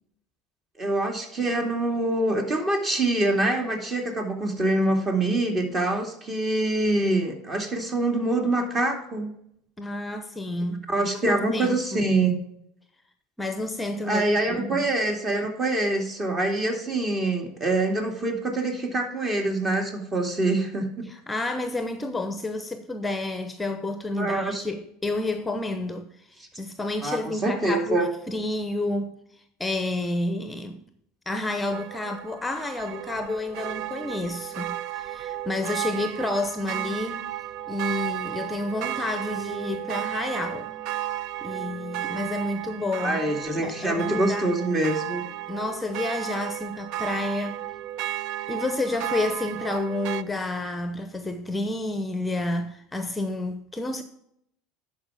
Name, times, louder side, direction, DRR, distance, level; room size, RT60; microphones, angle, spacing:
voice 1, 0.8-9.3 10.9-12.3 14.1-21.1 24.2-24.6 27.0-28.1 43.0-45.2, right 2 dB, 30° right, 2.4 m, -25 dB
voice 2, 9.8-12.1 13.4-14.9 21.1-26.3 26.6-30.8 31.3-37.3 37.7-40.7 41.4-43.3 43.6-44.5 45.5-47.6 48.5-54.0, left 2 dB, 10° left, 0.7 m, -30 dB
sound 1, 31.7-50.2, right 13 dB, 60° right, 0.4 m, -33 dB
11.0 x 4.8 x 4.8 m
hypercardioid pair, 85°, 0 cm